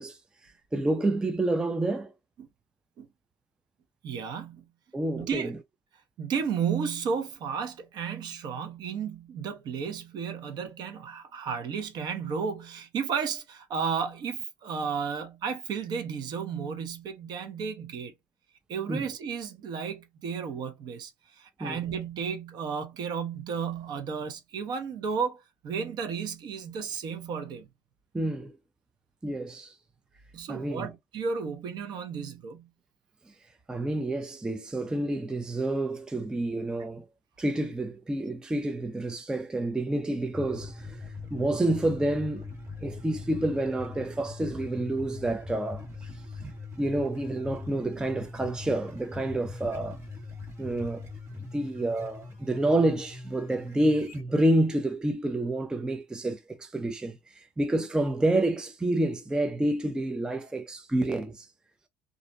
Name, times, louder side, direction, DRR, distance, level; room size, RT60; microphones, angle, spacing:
voice 1, 0.0-2.1 4.9-5.6 18.9-19.1 21.6-21.8 28.1-28.5 29.2-29.8 30.5-30.9 33.7-37.1 37.4-41.0 41.3-42.5 42.8-46.1 46.8-50.0 50.6-51.1 51.4-61.5, right 1 dB, 10° right, 0.4 m, -29 dB
voice 2, 4.0-4.7 5.1-5.6 6.2-18.1 18.7-21.1 21.4-27.7 30.3-32.7, right 6 dB, 55° right, 0.7 m, -33 dB
sound 1, 40.3-54.2, left 3 dB, 35° right, 1.4 m, -41 dB
2.5 x 2.1 x 2.5 m
supercardioid pair, 95°, 9 cm